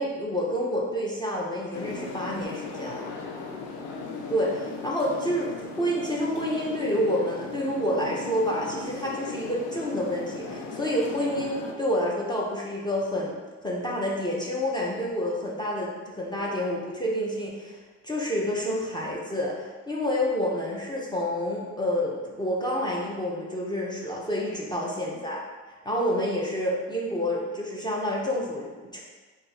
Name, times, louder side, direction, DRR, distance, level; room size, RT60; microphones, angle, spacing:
voice 1, 0.0-3.1 4.3-13.3 13.6-17.8 18.0-25.4 25.8-29.0, equal, 15° left, -4 dB, 0.5 m, -28 dB
sound 1, 1.7-11.7, left 4 dB, 80° left, 0.5 m, -37 dB
2.5 x 2.3 x 4.1 m, 1.3 s
cardioid pair, 90°, 30 cm